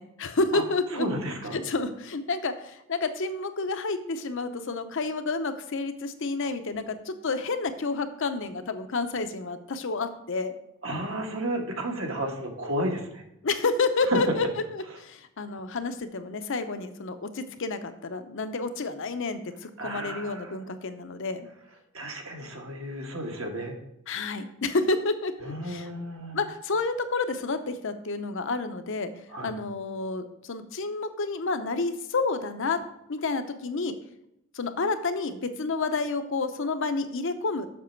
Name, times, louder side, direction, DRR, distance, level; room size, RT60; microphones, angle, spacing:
voice 1, 0.0-1.1 1.5-10.5 13.4-21.5 24.1-25.9 26.3-29.1 29.4-32.8 33.1-34.0 34.5-37.7, left 3 dB, 60° left, 9 dB, 0.7 m, -30 dB
voice 2, 0.9-1.6 10.8-13.2 14.1-14.2 19.8-20.6 21.9-23.7 25.4-26.4 29.3-29.5, right 1 dB, 65° right, 2 dB, 1.4 m, -32 dB
7.4 x 6.2 x 4.5 m, 0.80 s
head